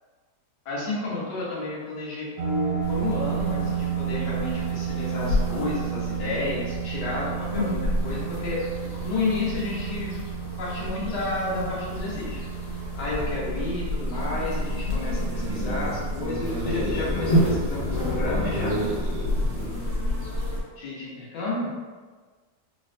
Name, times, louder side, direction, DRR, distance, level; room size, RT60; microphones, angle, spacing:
voice 1, 0.6-10.2 10.6-12.4 12.9-18.7 20.8-21.7, left 2 dB, 85° left, -6 dB, 1.5 m, -31 dB
sound 1, 2.4-19.6, right 10 dB, 85° right, 1.2 m, -33 dB
sound 2, 2.8-20.6, left 1 dB, 50° left, 1.0 m, -30 dB
sound 3, 15.3-20.3, equal, 65° right, 0.7 m, -32 dB
4.5 x 2.1 x 2.5 m, 1.4 s
omnidirectional pair, 1.8 m